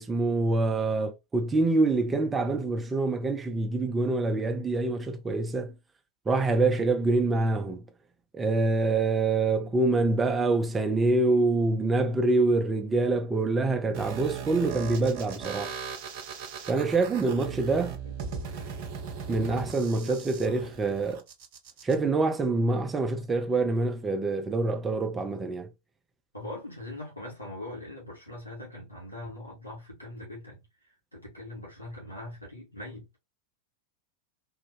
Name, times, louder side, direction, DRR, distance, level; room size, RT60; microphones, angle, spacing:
voice 1, 0.0-5.7 6.3-7.8 8.3-15.7 16.7-18.0 19.3-21.2 21.8-25.7, right 3 dB, 15° right, 0.6 m, -26 dB
sound 1, 13.9-21.9, right 6 dB, 45° right, 0.9 m, -38 dB
voice 2, 17.7-18.8 19.5-20.2 20.8-21.0 26.3-33.2, left 1 dB, 80° left, 2.5 m, -42 dB
3.8 x 2.4 x 3.3 m
figure-of-eight pair, 90°, 0 cm